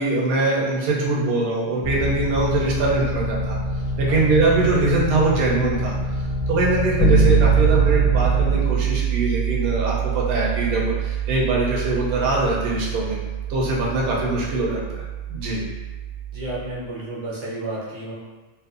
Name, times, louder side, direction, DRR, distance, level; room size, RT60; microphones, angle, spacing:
voice 1, 0.0-3.6 4.0-5.9 6.5-13.2 13.5-15.6, right 2 dB, 65° right, -4 dB, 0.7 m, -22 dB
sound 1, 1.8-8.5, equal, 35° left, 0.8 m, -26 dB
voice 2, 4.1-4.4 16.3-18.1, right 1 dB, 85° right, -6 dB, 1.1 m, -32 dB
Bass guitar, 7.0-16.7, right 6 dB, 75° left, 0.8 m, -23 dB
2.6 x 2.2 x 2.4 m, 1.2 s
omnidirectional pair, 1.2 m